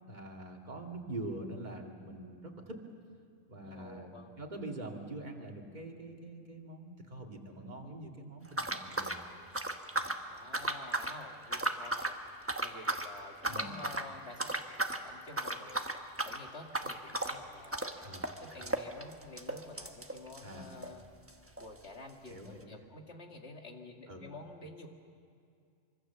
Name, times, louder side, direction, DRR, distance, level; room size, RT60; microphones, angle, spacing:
voice 1, 0.1-2.8 3.5-9.2 10.0-10.1 13.5-13.7 18.0-18.2 20.4-20.7 22.3-22.8 24.1-24.2, right 2 dB, 35° right, 1 dB, 2.5 m, -44 dB
voice 2, 3.6-4.4 10.3-12.2 12.6-15.9 16.2-21.0 21.6-24.9, left 2 dB, 55° left, 2 dB, 2.4 m, -50 dB
sound 1, 8.5-10.2 10.5-11.2 11.5-12.2 12.5-13.1 13.4-14.1 14.4-15.0 15.3-21.0 21.3-21.4 21.6-21.7 22.3-22.4, right 1 dB, 10° right, 1.1 m, -35 dB
25.0 x 25.0 x 7.1 m, 2.4 s
omnidirectional pair, 1.3 m